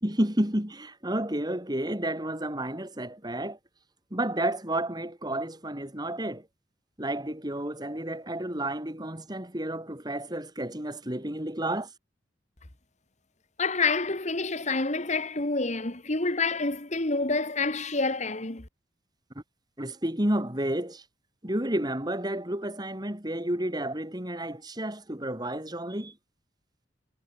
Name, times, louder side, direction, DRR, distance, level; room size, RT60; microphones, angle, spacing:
voice 1, 0.0-3.6 4.1-6.5 7.0-11.9 19.8-21.0 21.4-26.1, right 1 dB, 20° right, 3.6 m, -31 dB
voice 2, 13.6-18.7, left 3 dB, 40° left, 2.0 m, -28 dB
head